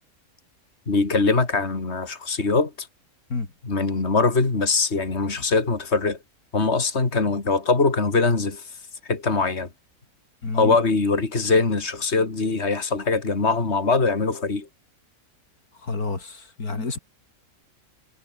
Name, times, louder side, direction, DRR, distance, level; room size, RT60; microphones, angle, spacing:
voice 1, 0.9-2.9 3.6-6.2 6.5-8.7 9.0-9.7 10.5-14.7, left 4 dB, 45° left, 3.3 m, -22 dB
voice 2, 10.4-10.8 15.8-17.0, left 3 dB, 85° left, 3.9 m, -29 dB
omnidirectional pair, 1.5 m